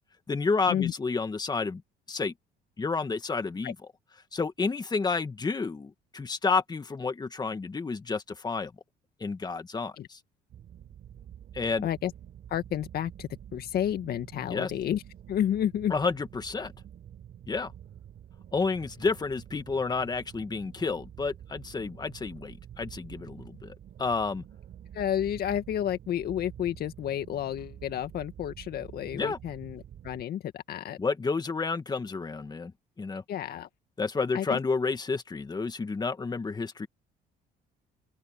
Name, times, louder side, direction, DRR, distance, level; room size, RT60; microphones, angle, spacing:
voice 1, 0.3-1.8 2.1-2.3 2.8-3.8 4.3-8.7 9.2-10.2 11.5-11.9 14.5-14.7 15.9-16.7 17.5-17.7 18.5-24.4 29.1-29.4 31.0-32.7 33.0-33.2 34.0-36.9, left 4 dB, 25° left, 1.9 m, -30 dB
sound 1, 10.5-30.2, right 10 dB, 55° right, 3.8 m, -48 dB
voice 2, 12.5-15.0 15.3-15.9 24.9-31.0 33.3-33.7 34.3-34.6, left 10 dB, 60° left, 2.0 m, -31 dB
open air
cardioid pair, 100°, 18 cm